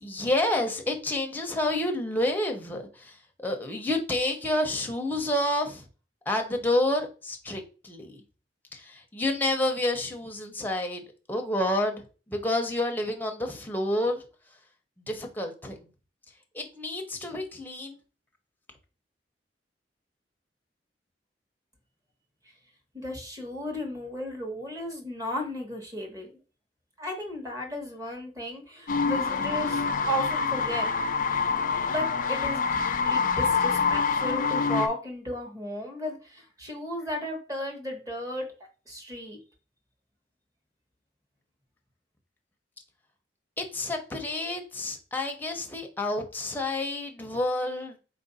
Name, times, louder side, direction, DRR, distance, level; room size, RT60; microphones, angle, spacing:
voice 1, 0.0-5.8 6.3-8.2 8.7-11.0 11.3-12.0 12.3-14.2 15.1-15.8 16.5-18.0 43.6-48.0, left 1 dB, 10° left, 0.7 m, -29 dB
voice 2, 22.9-26.3 27.0-30.9 31.9-38.5 38.9-39.4, equal, 20° right, 1.2 m, -34 dB
sound 1, 28.9-34.9, left 5 dB, 50° left, 0.5 m, -26 dB
4.3 x 2.5 x 4.0 m
head